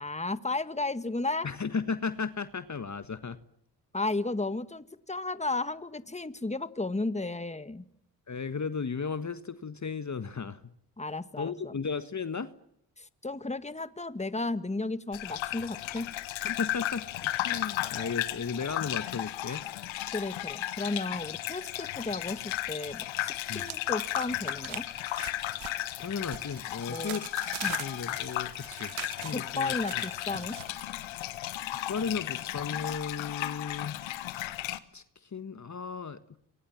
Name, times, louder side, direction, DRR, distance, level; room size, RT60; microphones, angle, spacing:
voice 1, 0.0-1.5 3.9-7.8 11.0-11.7 13.0-16.1 20.1-24.8 26.9-27.2 27.6-27.8 29.3-30.6, left 2 dB, 15° left, 13 dB, 1.9 m, -34 dB
voice 2, 1.4-3.4 8.3-10.6 11.4-12.5 16.4-19.6 23.5-23.6 26.0-27.4 27.8-30.0 31.1-31.3 31.7-34.2 34.9-36.4, left 5 dB, 35° left, 12 dB, 1.6 m, -35 dB
Gurgling / Bathtub (filling or washing), 15.1-34.8, left 14 dB, 80° left, 1.5 m, -35 dB
sound 1, 21.8-22.7 23.0-30.8, right 14 dB, 80° right, 1.3 m, -44 dB
28.0 x 23.5 x 7.5 m, 0.76 s
hypercardioid pair, 45°, 46 cm